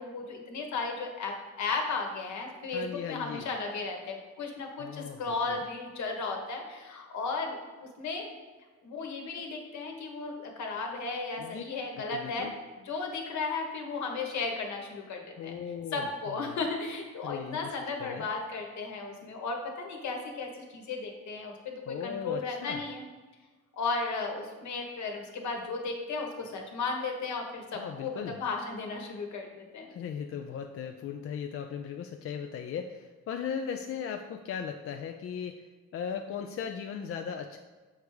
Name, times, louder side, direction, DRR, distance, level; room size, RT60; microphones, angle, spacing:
voice 1, 0.0-7.6 8.0-8.3 8.8-12.5 12.8-15.5 15.9-23.0 23.7-29.9, left 4 dB, 70° left, 2 dB, 1.2 m, -35 dB
voice 2, 2.7-3.5 4.8-5.6 11.4-11.6 12.0-12.5 15.4-16.6 17.2-17.7 18.0-18.3 21.9-22.8 27.7-28.4 29.9-35.7 35.9-37.6, left 7 dB, 50° left, 4 dB, 0.4 m, -37 dB
6.5 x 3.4 x 4.8 m, 1.3 s
cardioid pair, 90°, 30 cm